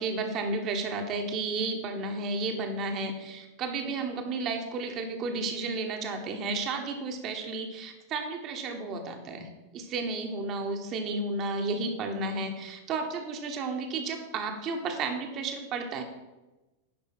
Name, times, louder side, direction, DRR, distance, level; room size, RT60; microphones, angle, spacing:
voice 1, 0.0-16.0, right 3 dB, 35° right, 4 dB, 1.3 m, -32 dB
10.5 x 5.4 x 4.8 m, 1.1 s
figure-of-eight pair, 90°, 0 cm